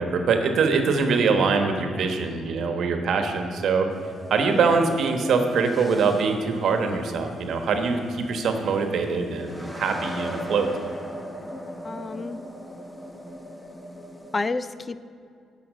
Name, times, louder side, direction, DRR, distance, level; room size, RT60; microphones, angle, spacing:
voice 1, 0.0-3.9 4.3-10.7, right 4 dB, 65° right, 5 dB, 1.2 m, -23 dB
sound 1, 3.9-14.5, equal, 10° left, 0.9 m, -39 dB
voice 2, 4.5-4.8 11.8-12.4 14.3-15.0, left 3 dB, 30° left, 15 dB, 0.4 m, -30 dB
11.5 x 5.9 x 7.4 m, 2.3 s
cardioid pair, 90°, 0 cm